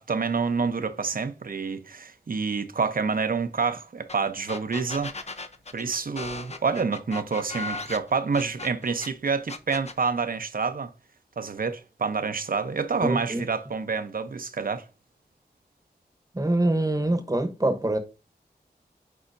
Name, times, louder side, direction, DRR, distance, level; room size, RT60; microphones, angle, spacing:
voice 1, 0.0-5.1 5.7-10.9 11.4-14.8, right 5 dB, 55° right, 0.8 m, -28 dB
sound 1, 4.1-4.2 4.5-9.1 9.5-10.0, left 3 dB, 40° left, 0.7 m, -36 dB
voice 2, 13.0-13.5 16.3-18.0, right 1 dB, 20° right, 1.1 m, -24 dB
8.4 x 4.3 x 2.6 m
cardioid pair, 50°, 17 cm